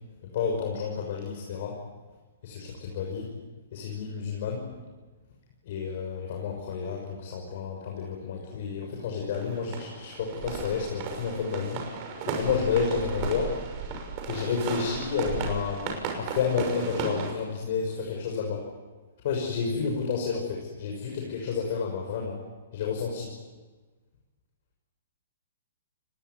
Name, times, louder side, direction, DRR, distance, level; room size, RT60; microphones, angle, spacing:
voice 1, 0.3-1.8 2.4-3.3 3.7-4.6 5.6-11.8 12.2-13.6 14.3-18.7 19.2-22.4 22.7-23.3, left 6 dB, 55° left, 0 dB, 6.5 m, -30 dB
sound 1, 9.3-17.3, right 5 dB, 35° right, 6.2 m, -35 dB
29.5 x 20.0 x 9.6 m, 1.3 s
hypercardioid pair, 145°, 0 cm